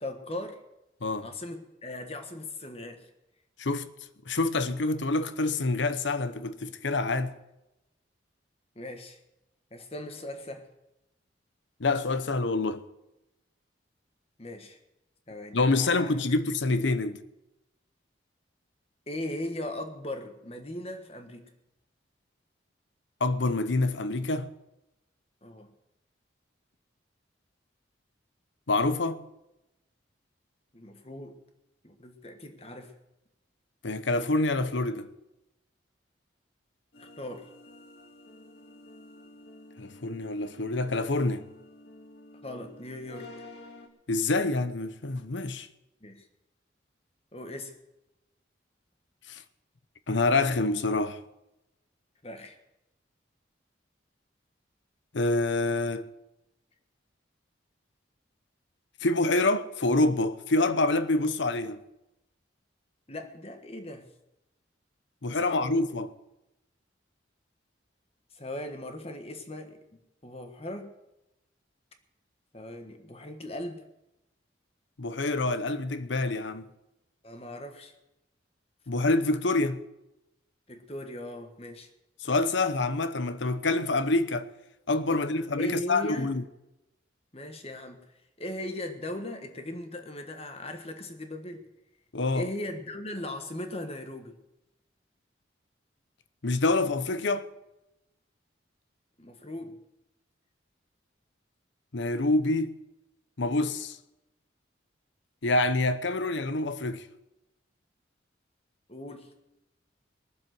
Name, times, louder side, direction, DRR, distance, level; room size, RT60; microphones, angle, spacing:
voice 1, 0.0-0.6 1.2-3.1 8.7-9.2 9.7-10.7 14.4-14.8 15.3-16.2 19.1-21.5 25.4-25.7 30.7-31.4 31.8-33.0 37.0-37.5 42.4-43.3 46.0-46.3 47.3-47.7 52.2-52.6 63.1-64.1 65.3-65.9 68.3-69.8 70.2-70.9 72.5-73.8 77.2-77.9 80.7-81.9 85.1-85.3 85.6-86.3 87.3-88.1 88.4-91.7 92.3-94.4 99.2-99.8 108.9-109.3, left 1 dB, 30° left, 1.5 m, -38 dB
voice 2, 3.6-3.9 4.3-7.3 11.8-12.8 15.5-17.2 23.2-24.5 28.7-29.2 33.8-35.1 39.8-41.4 44.1-45.7 49.3-49.4 50.1-51.2 55.1-56.1 59.0-61.8 65.2-66.1 75.0-76.7 78.9-79.8 82.2-84.5 84.9-86.4 92.1-92.5 96.4-97.5 101.9-102.7 103.4-104.0 105.4-107.1, left 2 dB, 75° left, 0.9 m, -26 dB
sound 1, 36.9-43.9, left 1 dB, 60° left, 2.2 m, -50 dB
21.0 x 7.4 x 7.7 m
head